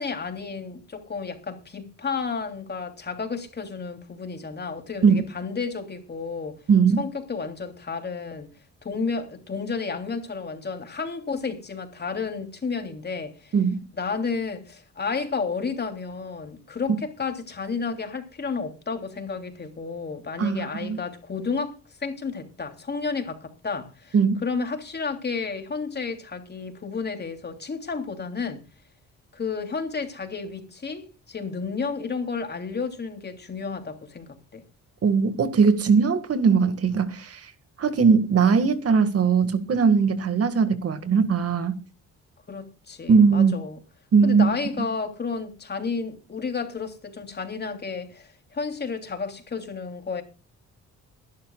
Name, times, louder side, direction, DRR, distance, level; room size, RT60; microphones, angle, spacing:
voice 1, 0.0-6.6 7.0-8.5 8.8-13.5 14.0-24.2 24.4-28.6 29.3-34.6 42.5-43.8 44.2-50.2, left 5 dB, 35° left, 3.1 m, -32 dB
voice 2, 6.7-7.0 13.5-13.8 20.4-21.0 24.1-24.4 35.0-37.4 37.8-41.7 43.1-43.5 44.1-44.5, right 5 dB, 50° right, 1.9 m, -20 dB
22.5 x 11.5 x 2.4 m
cardioid pair, 90°, 30 cm